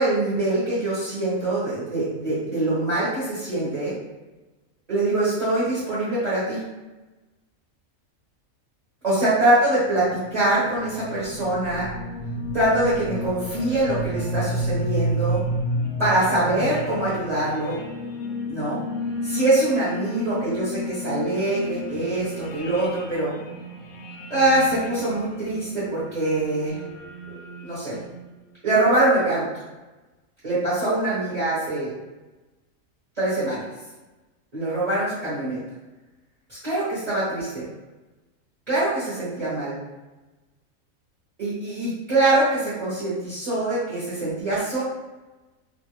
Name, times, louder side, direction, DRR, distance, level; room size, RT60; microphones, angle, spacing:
voice 1, 0.0-3.9 4.9-6.6 9.0-11.9 12.5-15.4 16.0-17.8 18.5-18.8 19.2-23.3 24.3-26.8 27.3-27.4 27.6-28.0 28.6-29.4 30.4-31.9 33.2-33.6 34.5-35.6 36.5-37.6 38.7-39.8 41.4-44.8, right 2 dB, 30° right, -11 dB, 1.0 m, -23 dB
sound 1, 10.0-28.4, equal, 70° left, 0.8 m, -32 dB
2.6 x 2.4 x 3.0 m, 1.1 s
omnidirectional pair, 1.4 m